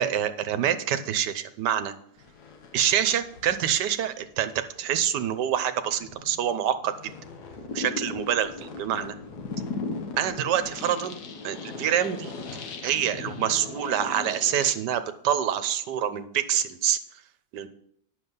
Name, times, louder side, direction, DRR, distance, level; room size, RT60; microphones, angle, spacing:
voice 1, 0.0-1.9 2.7-7.1 7.7-9.1 10.2-11.2 11.4-12.3 12.8-17.0 17.5-17.7, right 10 dB, 75° right, 11 dB, 1.3 m, -26 dB
sound 1, 2.2-4.3 4.9-5.2 5.9-14.7, left 3 dB, 65° left, 1.5 m, -38 dB
9.8 x 6.7 x 5.4 m, 0.70 s
omnidirectional pair, 1.9 m